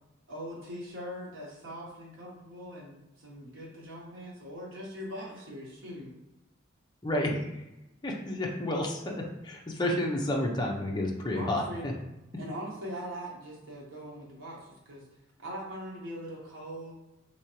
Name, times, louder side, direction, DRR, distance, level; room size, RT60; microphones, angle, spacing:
voice 1, 0.3-6.1 11.3-11.9 12.4-15.0 15.4-16.9, equal, 85° right, -4 dB, 0.9 m, -41 dB
voice 2, 7.0-7.6 8.0-11.9, left 1 dB, 20° left, -1 dB, 0.5 m, -31 dB
3.4 x 2.9 x 2.9 m, 0.95 s
head